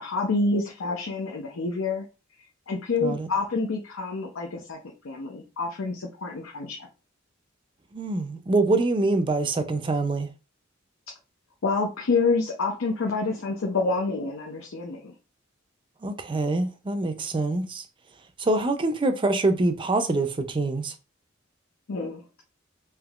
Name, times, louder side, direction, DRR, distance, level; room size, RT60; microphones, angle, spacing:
voice 1, 0.0-2.1 2.7-4.8 5.0-6.9 11.6-15.1 21.9-22.2, left 3 dB, 90° left, 0.6 m, -27 dB
voice 2, 7.9-10.3 16.0-17.8 18.4-20.9, right 2 dB, 25° right, 0.4 m, -25 dB
3.5 x 2.8 x 2.3 m
head